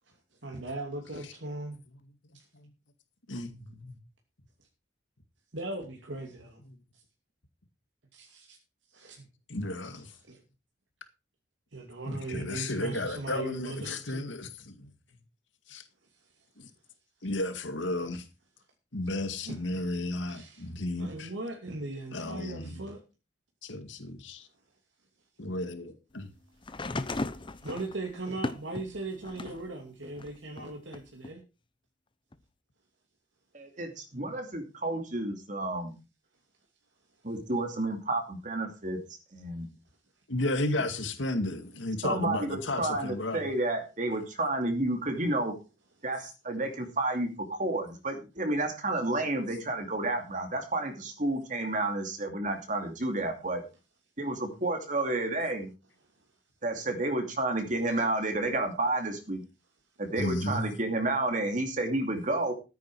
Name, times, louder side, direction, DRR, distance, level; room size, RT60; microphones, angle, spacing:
voice 1, 0.4-1.8 2.3-2.4 5.5-6.6 8.1-8.6 8.9-9.3 10.3-10.4 11.7-14.3 19.5-19.6 20.3-20.7 21.0-23.0 27.6-31.4, right 2 dB, 80° right, 2.7 m, -39 dB
voice 2, 3.3-4.0 9.5-10.1 12.1-14.9 15.7-15.8 16.6-16.7 17.2-18.2 18.9-21.3 22.1-22.8 23.6-24.5 25.4-26.3 40.3-43.5 60.2-60.6, left 2 dB, 85° left, 2.2 m, -33 dB
sound 1, 26.6-29.7 30.2-31.3 32.3-32.4, left 2 dB, 25° left, 0.8 m, -37 dB
voice 3, 33.5-36.0 37.2-39.0 39.3-39.7 42.0-45.5 46.0-53.6 54.2-55.7 56.6-59.4 60.0-62.5, right 2 dB, 45° right, 2.6 m, -31 dB
14.0 x 9.4 x 4.8 m
head